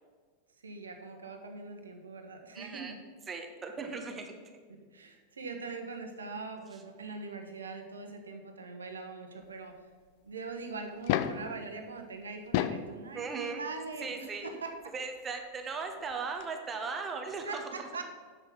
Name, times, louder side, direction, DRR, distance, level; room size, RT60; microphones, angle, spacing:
voice 1, 0.6-3.0 4.9-9.8 10.2-14.9 17.5-18.0, right 4 dB, 70° right, 5 dB, 1.2 m, -42 dB
voice 2, 2.5-2.9 3.3-4.6 13.1-13.6 14.0-14.5 14.9-17.6, right 4 dB, 20° right, 4 dB, 1.3 m, -38 dB
sound 1, 10.9-11.5 12.3-12.9 14.2-14.3 16.1-16.2 16.4-16.5, left 11 dB, 45° left, 0.5 m, -30 dB
7.8 x 6.7 x 6.3 m, 1.5 s
figure-of-eight pair, 90°, 0 cm